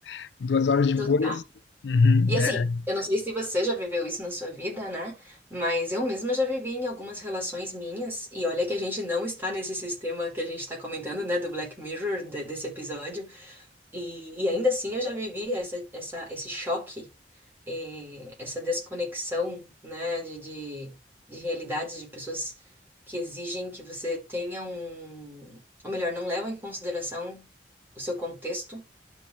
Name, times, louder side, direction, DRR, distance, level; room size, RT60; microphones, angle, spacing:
voice 1, 0.1-1.4 1.8-2.7, left 4 dB, 75° left, 0.4 m, -23 dB
voice 2, 1.0-1.4 2.3-13.6 13.9-17.1 17.7-20.9 21.3-22.5 23.1-27.5 28.0-28.9, left 1 dB, 10° right, 4.3 m, -31 dB
12.0 x 4.5 x 3.4 m
head